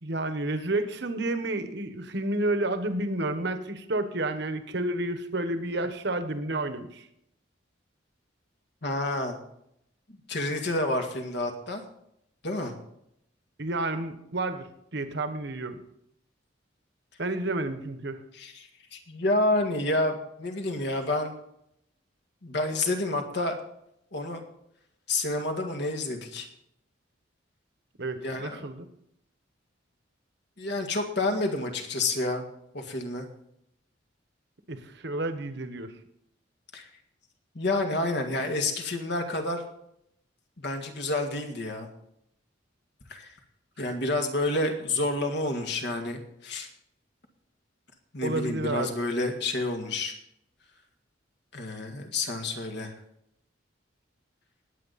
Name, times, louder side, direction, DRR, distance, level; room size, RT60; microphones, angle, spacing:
voice 1, 0.0-7.1 13.6-15.8 17.2-18.2 28.0-28.9 34.7-35.9 48.2-49.0, right 2 dB, 60° right, 9 dB, 1.2 m, -30 dB
voice 2, 8.8-9.4 10.3-11.8 12.4-12.7 18.3-21.3 22.4-23.6 24.1-24.4 25.1-26.5 28.2-28.6 30.6-32.4 32.7-33.3 36.7-36.9 37.6-39.6 40.6-41.9 43.1-43.3 43.8-46.7 48.1-50.1 51.5-52.9, left 2 dB, 60° left, 4 dB, 2.0 m, -29 dB
19.5 x 8.2 x 4.2 m, 0.76 s
head